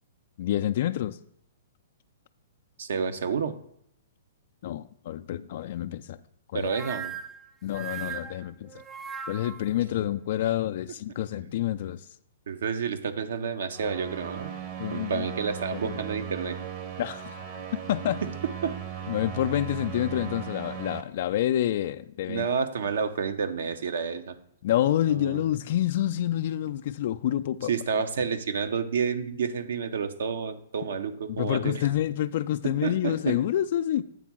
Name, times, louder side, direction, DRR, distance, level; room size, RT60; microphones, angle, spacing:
voice 1, 0.4-1.2 4.6-6.2 6.5-6.7 7.6-8.8 9.3-12.0 14.8-15.3 15.7-16.0 17.0-18.2 19.1-22.5 24.6-27.7 31.3-34.0, left 12 dB, 55° left, 0.3 m, -28 dB
voice 2, 2.8-3.5 6.5-7.1 12.5-14.5 14.9-16.6 18.6-18.8 22.3-24.4 25.0-25.4 27.7-31.8 32.6-33.4, right 6 dB, 70° right, 0.7 m, -30 dB
sound 1, 6.6-9.7, right 7 dB, 15° right, 0.4 m, -38 dB
sound 2, 13.7-21.0, right 8 dB, 40° right, 0.9 m, -37 dB
8.5 x 3.6 x 6.1 m
hypercardioid pair, 125°, 0 cm